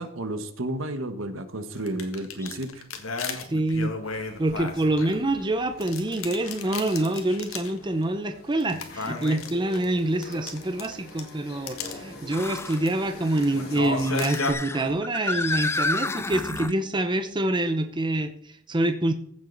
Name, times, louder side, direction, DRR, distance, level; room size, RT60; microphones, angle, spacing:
voice 1, 0.0-2.8, right 1 dB, 70° right, 9 dB, 1.3 m, -32 dB
sound 1, 1.7-5.4 5.8-8.0 8.6-11.3 11.7-11.9 12.4-12.9 13.3-14.5, left 4 dB, 85° left, 1.8 m, -34 dB
sound 2, 2.4-2.6 3.2-3.3 5.4-5.5 9.0-9.1 12.3-12.8 13.8-16.7, left 3 dB, 10° left, 0.3 m, -30 dB
voice 2, 3.5-4.0 4.4-19.1, right 1 dB, 20° right, 7 dB, 0.8 m, -26 dB
sound 3, 4.0-13.8, left 2 dB, 50° left, 5.5 m, -46 dB
15.0 x 7.5 x 4.0 m, 0.69 s
head